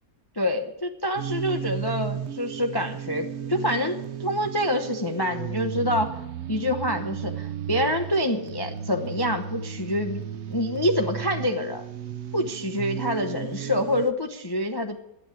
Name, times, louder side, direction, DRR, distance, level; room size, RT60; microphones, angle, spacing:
voice 1, 0.4-6.2 6.5-10.2 10.5-11.8 12.3-15.0, left 1 dB, 20° left, 4 dB, 0.6 m, -26 dB
sound 1, 1.2-14.1, right 9 dB, 65° right, 0.6 m, -34 dB
13.0 x 8.9 x 9.1 m, 0.87 s
omnidirectional pair, 2.0 m